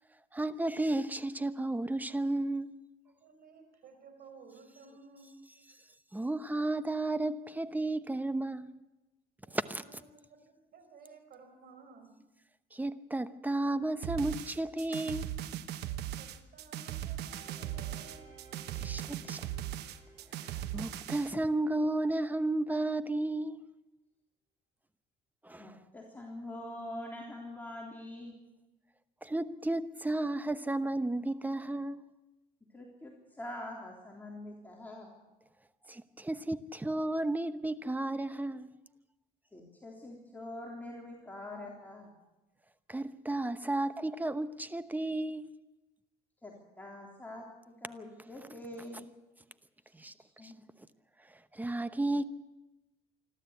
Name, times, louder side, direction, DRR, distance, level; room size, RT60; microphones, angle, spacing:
voice 1, 0.3-2.7 6.1-8.7 9.5-9.8 12.7-15.3 18.8-19.4 20.7-23.6 25.4-25.7 29.2-32.0 35.9-38.7 42.9-45.5 50.0-50.1 50.4-50.5 51.5-52.2, right 2 dB, 10° right, 0.9 m, -33 dB
voice 2, 3.2-5.3 9.5-10.4 10.7-12.1 15.8-18.3, right 4 dB, 65° right, 5.4 m, -55 dB
sound 1, 14.0-21.3, right 12 dB, 80° right, 1.2 m, -39 dB
sound 2, 17.3-22.1 22.6-22.7, right 4 dB, 35° right, 6.0 m, -57 dB
voice 3, 25.6-28.3 32.7-35.1 39.5-42.1 46.4-49.1 50.4-50.5, left 1 dB, 10° left, 3.6 m, -44 dB
26.5 x 12.5 x 8.3 m
cardioid pair, 110°, 17 cm